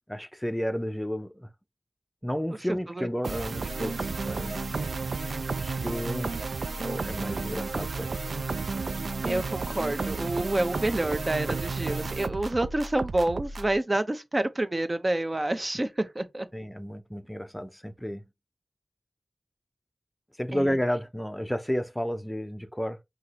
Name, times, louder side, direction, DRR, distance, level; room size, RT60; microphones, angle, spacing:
voice 1, 0.1-1.5 2.2-4.7 5.2-5.4 5.6-6.3 6.8-8.2 16.5-18.2 20.4-23.0, equal, 5° left, 0.6 m, -32 dB
sound 1, 3.2-13.8, right 4 dB, 85° right, 0.4 m, -32 dB
voice 2, 9.2-16.5 20.5-20.6, right 1 dB, 35° right, 0.7 m, -28 dB
5.7 x 2.9 x 2.9 m
wide cardioid pair, 70°, 0 cm